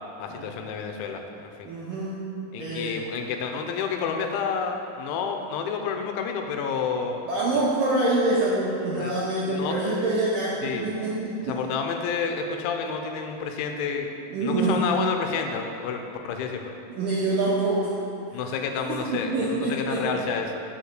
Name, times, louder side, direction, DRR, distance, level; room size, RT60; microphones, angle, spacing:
voice 1, 0.2-1.7 2.5-7.2 7.6-7.7 9.0-9.7 10.6-11.0 11.5-14.1 14.4-16.7 18.3-20.6, left 6 dB, 85° left, 4 dB, 3.0 m, -30 dB
voice 2, 1.6-2.2 2.6-3.0 7.3-11.6 14.3-14.8 16.9-17.9 18.9-20.1, right 2 dB, 75° right, -7 dB, 2.1 m, -26 dB
9.9 x 6.6 x 6.5 m, 2.7 s
omnidirectional pair, 5.5 m